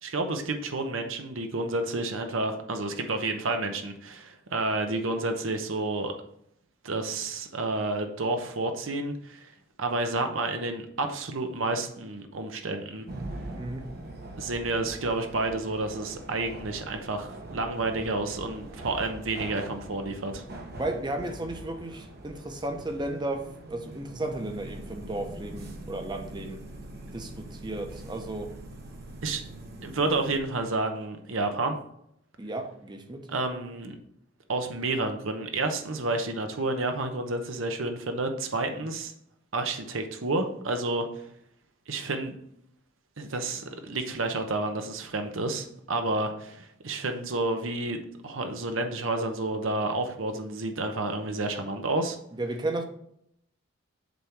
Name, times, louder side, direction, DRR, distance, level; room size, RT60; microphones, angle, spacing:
voice 1, 0.0-6.1 6.8-9.5 9.8-13.1 14.4-20.4 29.2-29.4 29.8-31.8 33.3-33.9 34.5-39.1 39.5-41.1 41.9-42.4 43.2-52.2, right 2 dB, 80° right, 5 dB, 0.9 m, -30 dB
sound 1, 13.1-30.4, right 1 dB, 55° right, 1.1 m, -42 dB
voice 2, 13.5-13.9 20.7-26.6 27.1-28.5 32.4-33.3 52.3-52.8, right 2 dB, 20° right, 5 dB, 0.9 m, -34 dB
7.3 x 3.7 x 5.9 m, 0.72 s
head